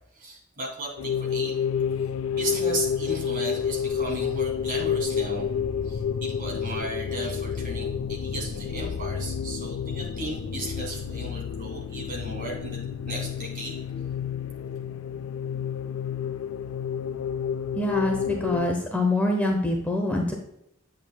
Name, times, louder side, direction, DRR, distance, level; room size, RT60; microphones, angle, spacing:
voice 1, 0.2-1.5 2.3-5.5 5.8-13.8, right 2 dB, 45° right, -1 dB, 2.6 m, -35 dB
sound 1, 1.0-18.7, left 7 dB, 90° left, 0.3 m, -30 dB
voice 2, 17.7-20.3, left 1 dB, 10° left, 1 dB, 0.8 m, -25 dB
8.7 x 7.4 x 2.2 m, 0.81 s
head